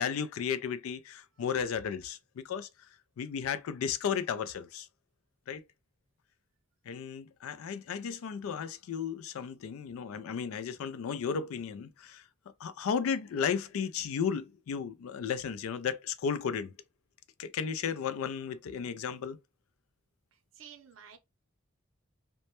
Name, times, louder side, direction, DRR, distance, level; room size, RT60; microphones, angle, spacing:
voice 1, 0.0-2.7 3.2-4.9 5.5-5.6 6.9-12.2 12.6-16.7 17.4-19.4, left 7 dB, 85° left, 0.3 m, -34 dB
voice 2, 20.5-21.2, right 8 dB, 65° right, 0.5 m, -51 dB
2.1 x 2.1 x 2.8 m
head